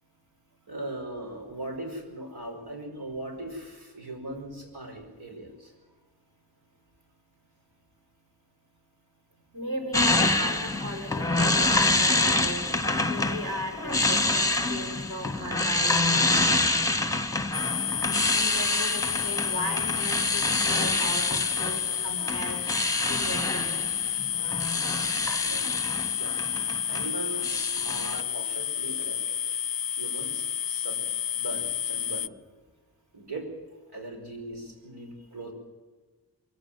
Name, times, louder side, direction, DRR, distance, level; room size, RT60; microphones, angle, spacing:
voice 1, 0.7-5.7 25.4-25.6 26.1-26.3 26.9-29.6 29.9-31.0 31.3-32.3 33.1-33.5 33.9-35.5, right 1 dB, 80° right, 2 dB, 5.5 m, -39 dB
voice 2, 9.5-12.6 13.1-16.6 18.1-22.6 23.1-23.7, equal, 50° right, 1 dB, 5.9 m, -37 dB
sound 1, 9.9-27.1 27.4-28.2, left 2 dB, 10° left, 1.1 m, -26 dB
sound 2, 17.5-32.3, left 9 dB, 60° left, 0.5 m, -30 dB
23.0 x 16.0 x 7.8 m, 1.3 s
wide cardioid pair, 100°, 39 cm